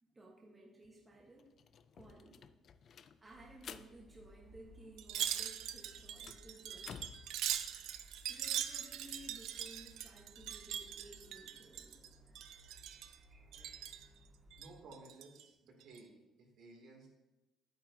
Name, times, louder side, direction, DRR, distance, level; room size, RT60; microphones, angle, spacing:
voice 1, 0.0-1.5 1.9-2.4 3.2-7.1 8.3-12.3, right 1 dB, 15° right, -2 dB, 1.2 m, -57 dB
sound 1, 0.8-0.9 1.2-5.1 5.4-7.3, left 7 dB, 45° left, 0.3 m, -54 dB
sound 2, 3.3-14.8, equal, 40° right, 1.7 m, -62 dB
Wind chime, 5.0-12.1 12.3-13.2 13.5-14.1 14.5-15.4 15.8-16.0, right 11 dB, 85° right, 0.5 m, -41 dB
voice 2, 14.6-17.1, right 2 dB, 65° right, -1 dB, 2.5 m, -56 dB
10.5 x 8.8 x 2.7 m, 1.0 s
cardioid pair, 160°, 0 cm